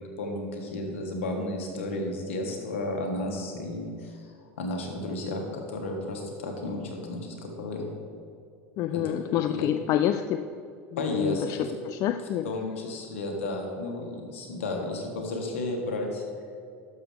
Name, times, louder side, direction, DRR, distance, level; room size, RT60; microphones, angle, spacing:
voice 1, 0.0-7.9 8.9-9.7 11.0-11.7 12.4-16.2, left 2 dB, 80° left, 2 dB, 1.7 m, -33 dB
voice 2, 8.8-10.4 11.1-11.6 11.9-12.5, left 11 dB, 50° left, 9 dB, 0.4 m, -27 dB
12.0 x 6.9 x 3.5 m, 2.4 s
hypercardioid pair, 90°, 7 cm